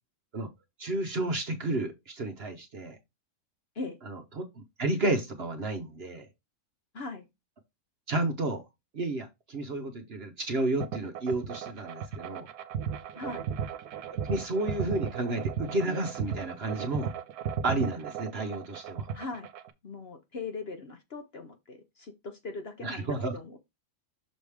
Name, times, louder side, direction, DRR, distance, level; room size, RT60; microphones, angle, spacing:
voice 1, 0.8-3.0 4.1-6.3 8.1-8.6 8.9-12.5 14.3-17.1 17.6-19.1 22.8-23.3, right 2 dB, 50° right, 0.9 m, -31 dB
voice 2, 6.9-7.3 13.1-13.5 19.1-19.5 19.8-23.6, left 3 dB, 50° left, 0.9 m, -40 dB
sound 1, 10.8-19.7, right 7 dB, 75° right, 1.3 m, -35 dB
6.4 x 4.8 x 3.4 m
omnidirectional pair, 1.7 m